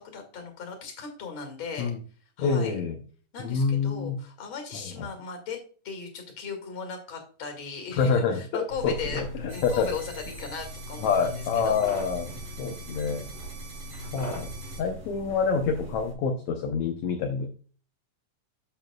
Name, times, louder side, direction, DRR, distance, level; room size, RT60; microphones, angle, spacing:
voice 1, 0.1-1.9 2.4-2.8 3.3-5.6 5.8-9.2 9.5-11.8, left 5 dB, 40° left, 3 dB, 2.5 m, -37 dB
voice 2, 2.4-3.0 3.4-4.2 5.0-5.1 8.0-9.9 11.0-13.3 14.1-14.5 14.8-17.5, left 5 dB, 70° left, 3 dB, 2.0 m, -27 dB
sound 1, 8.7-16.1, equal, 30° right, 3.4 m, -40 dB
sound 2, 9.5-14.8, right 4 dB, 55° right, 4.3 m, -46 dB
9.0 x 7.4 x 2.3 m, 0.40 s
omnidirectional pair, 3.8 m